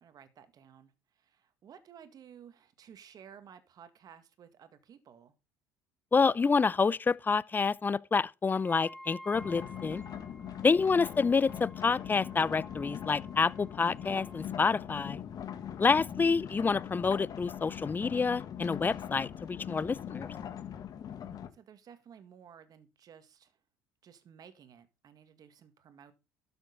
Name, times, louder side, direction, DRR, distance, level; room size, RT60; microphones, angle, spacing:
voice 1, 0.0-5.3 10.8-11.2 21.5-23.6 24.0-26.1, right 8 dB, 45° right, 2.0 m, -55 dB
voice 2, 6.1-10.0 10.6-15.2 15.8-20.3, left 5 dB, 20° left, 0.6 m, -28 dB
Wind instrument woodwind instrument, 8.6-14.5, equal, ahead, 1.1 m, -52 dB
sound 1, 9.3-21.5, left 9 dB, 45° left, 1.7 m, -41 dB
12.0 x 7.9 x 4.0 m
hypercardioid pair, 70°, 9 cm